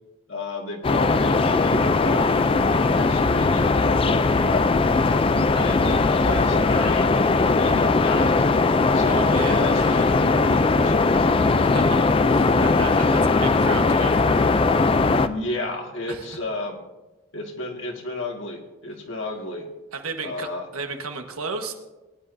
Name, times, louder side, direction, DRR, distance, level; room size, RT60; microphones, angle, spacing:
voice 1, 0.3-4.9 5.5-8.3 8.9-11.3 15.2-16.8 17.3-19.7 20.2-20.7, left 2 dB, 60° left, 2 dB, 1.8 m, -32 dB
sound 1, 0.8-15.3, left 3 dB, 25° left, 0.3 m, -19 dB
voice 2, 9.1-9.9 11.6-14.6 16.1-16.4 19.9-21.7, right 4 dB, 85° right, 5 dB, 1.4 m, -34 dB
20.5 x 10.5 x 2.6 m, 1.1 s
head